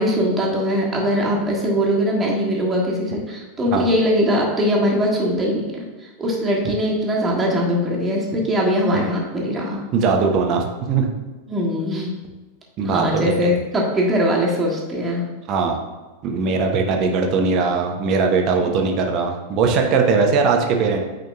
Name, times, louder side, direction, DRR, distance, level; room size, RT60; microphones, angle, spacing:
voice 1, 0.0-9.8 11.5-12.2 12.8-15.2 18.6-18.7, equal, 15° right, -3 dB, 1.6 m, -21 dB
voice 2, 9.9-11.1 12.8-13.2 15.5-15.8 16.2-21.0, right 4 dB, 35° right, 3 dB, 0.9 m, -20 dB
9.0 x 5.1 x 2.3 m, 1.2 s
figure-of-eight pair, 90°, 0 cm